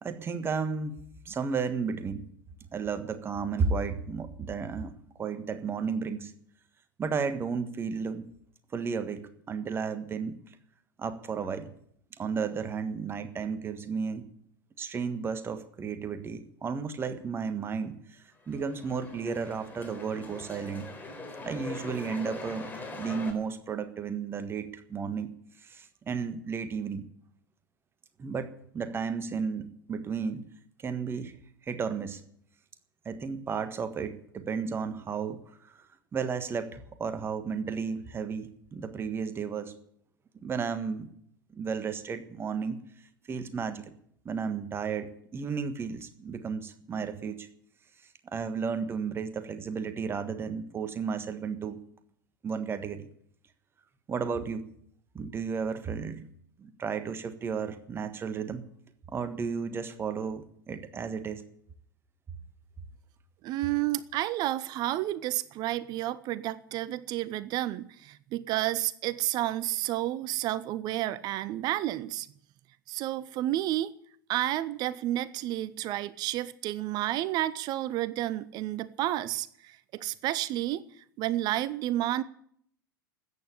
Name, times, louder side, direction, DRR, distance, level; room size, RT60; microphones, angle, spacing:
voice 1, 0.0-1.0 1.2-2.2 2.7-6.3 7.0-8.3 8.7-10.4 11.0-11.7 12.1-14.3 14.8-20.9 21.4-22.7 23.0-25.3 25.6-27.0 28.2-30.5 30.8-31.4 31.7-32.2 33.0-35.9 36.1-39.8 40.4-41.1 41.5-42.8 43.3-43.9 44.2-47.5 48.2-51.8 52.4-53.1 54.1-54.7 55.1-56.2 56.6-58.6 59.1-61.4, right 5 dB, 20° right, 10 dB, 1.5 m, -33 dB
sound 1, 18.3-23.3, left 3 dB, 15° left, 3.9 m, -42 dB
voice 2, 63.4-72.3 72.9-73.9 74.3-80.8 81.2-82.2, right 14 dB, 35° right, 18 dB, 0.6 m, -31 dB
14.0 x 9.2 x 10.0 m, 0.67 s
figure-of-eight pair, 90°, 12 cm